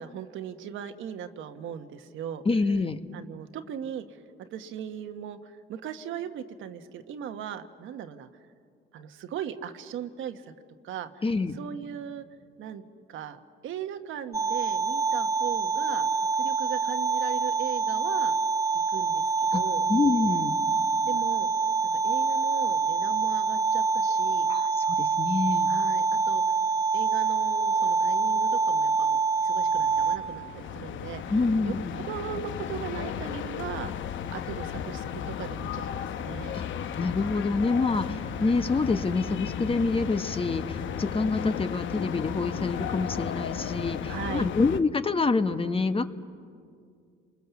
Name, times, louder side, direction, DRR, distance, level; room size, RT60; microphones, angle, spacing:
voice 1, 0.0-2.4 3.1-8.3 8.9-10.5 10.8-11.2 11.5-12.3 12.6-12.8 13.1-18.4 18.9-19.2 19.5-19.9 21.0-21.5 22.0-24.5 25.7-26.4 26.9-31.2 31.6-31.7 32.0-33.9 34.3-36.5 44.1-44.5, right 9 dB, 80° right, 8 dB, 1.3 m, -38 dB
voice 2, 2.4-3.0 11.2-11.6 19.5-19.6 19.9-20.6 24.5-25.7 31.3-32.0 36.5-36.6 37.0-46.0, left 3 dB, 30° left, 10 dB, 1.1 m, -27 dB
sound 1, 14.3-30.2, right 4 dB, 15° right, 1.6 m, -26 dB
sound 2, 29.4-44.8, left 8 dB, 75° left, 0.9 m, -34 dB
30.0 x 22.0 x 7.1 m, 2.2 s
cardioid pair, 90°, 20 cm